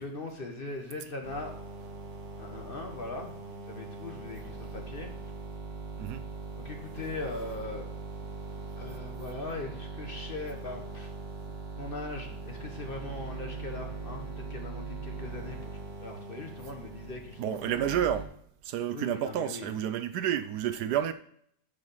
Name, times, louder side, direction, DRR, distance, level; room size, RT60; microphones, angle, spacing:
voice 1, 0.0-1.5 2.4-5.1 6.6-7.9 8.8-11.1 11.8-15.7 16.0-17.9 18.9-19.8, left 2 dB, 35° left, 1.2 m, -40 dB
sound 1, 1.2-18.2, right 3 dB, 45° right, 1.6 m, -41 dB
voice 2, 17.4-18.3 18.6-21.1, right 10 dB, 75° right, 1.1 m, -30 dB
9.8 x 4.8 x 5.5 m
omnidirectional pair, 1.9 m